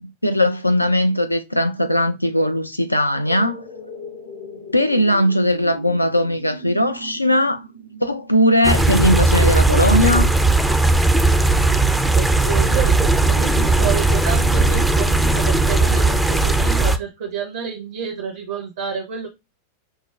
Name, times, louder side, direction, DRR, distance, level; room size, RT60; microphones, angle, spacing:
voice 1, 0.0-3.6 4.7-7.6 8.0-10.3, left 1 dB, 85° left, 0.4 m, -19 dB
sound 1, 3.2-9.3 9.7-9.8, equal, 80° right, 1.6 m, -38 dB
sound 2, 8.6-17.0, right 2 dB, 5° right, 0.4 m, -17 dB
voice 2, 12.1-19.3, right 7 dB, 60° right, 0.7 m, -29 dB
6.1 x 2.1 x 2.3 m
figure-of-eight pair, 90°, 0 cm